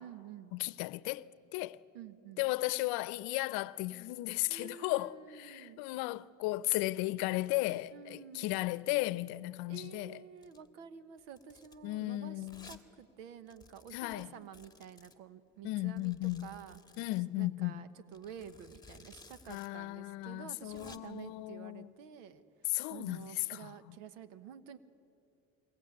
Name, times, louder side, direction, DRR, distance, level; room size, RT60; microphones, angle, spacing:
voice 1, 0.0-0.5 1.9-2.5 4.5-5.8 7.9-8.5 9.7-16.8 17.3-24.8, right 8 dB, 90° right, 1.2 m, -50 dB
voice 2, 0.5-1.8 2.4-10.2 11.8-12.8 13.9-14.3 15.6-16.5 17.0-17.9 19.5-21.9 22.7-23.7, left 19 dB, 70° left, 0.7 m, -35 dB
Domestic sounds home sounds, 10.4-10.7 11.2-11.8 12.4-12.8 13.1-13.2 13.5-15.2 16.0-17.2 18.1-19.7 19.9-20.0 20.5-21.0, left 4 dB, 10° left, 1.7 m, -57 dB
22.5 x 18.5 x 9.7 m
supercardioid pair, 85°, 38 cm